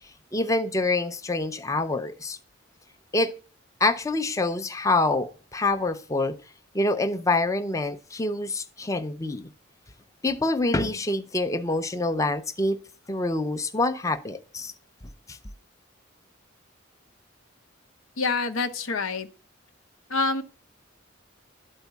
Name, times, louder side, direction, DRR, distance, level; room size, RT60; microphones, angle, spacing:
voice 1, 0.3-2.4 3.1-3.3 3.8-6.4 6.7-9.5 10.2-12.8 13.1-14.7 15.3-15.4, left 2 dB, 15° left, 0.5 m, -26 dB
voice 2, 18.2-19.3 20.1-20.4, left 4 dB, 85° left, 0.9 m, -26 dB
12.0 x 4.4 x 8.1 m
head